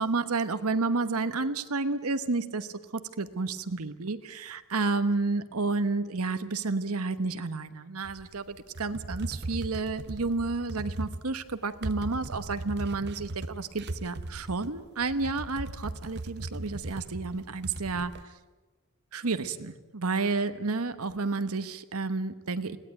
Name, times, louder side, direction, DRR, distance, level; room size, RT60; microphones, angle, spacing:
voice 1, 0.0-18.1 19.1-22.8, right 3 dB, 75° right, 11 dB, 1.2 m, -31 dB
sound 1, 8.0-18.2, right 2 dB, 50° right, 0.8 m, -38 dB
21.5 x 16.5 x 9.4 m, 1.3 s
head